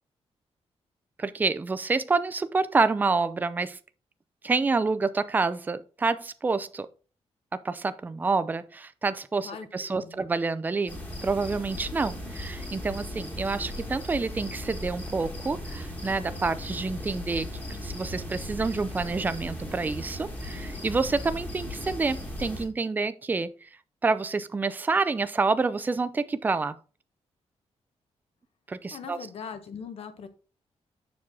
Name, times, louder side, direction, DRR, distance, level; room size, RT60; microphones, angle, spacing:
voice 1, 1.2-3.8 4.4-6.9 7.6-23.5 24.0-26.8 28.7-29.2, right 4 dB, 15° right, 0.4 m, -28 dB
voice 2, 9.4-10.2 28.9-30.3, left 6 dB, 60° left, 1.0 m, -40 dB
sound 1, 10.9-22.6, left 1 dB, 15° left, 1.6 m, -37 dB
7.2 x 6.1 x 3.6 m
wide cardioid pair, 175°, 11 cm